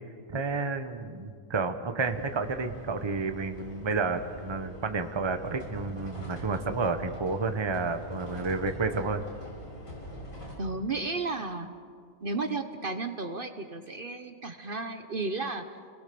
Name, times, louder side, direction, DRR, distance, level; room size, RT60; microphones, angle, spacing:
voice 1, 0.3-9.2, right 4 dB, 20° right, 8 dB, 1.0 m, -30 dB
sound 1, 2.0-10.5, equal, 80° left, 6.2 m, -44 dB
voice 2, 10.6-11.7 12.2-15.7, right 3 dB, 45° right, 8 dB, 1.1 m, -33 dB
30.0 x 20.0 x 6.9 m, 2.1 s
omnidirectional pair, 1.4 m